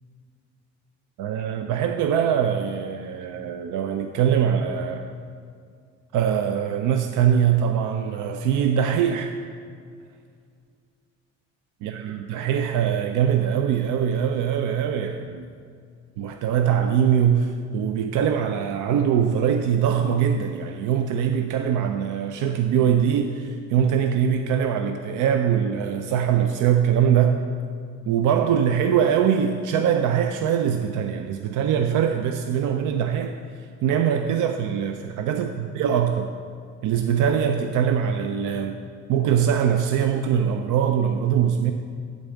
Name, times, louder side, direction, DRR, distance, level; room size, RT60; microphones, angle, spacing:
voice 1, 1.2-5.1 6.1-9.3 11.8-15.5 16.2-27.4 28.1-36.3 36.8-38.8 39.1-41.7, right 8 dB, 85° right, 6 dB, 0.5 m, -22 dB
8.9 x 4.0 x 7.1 m, 2.2 s
cardioid pair, 90°, 30 cm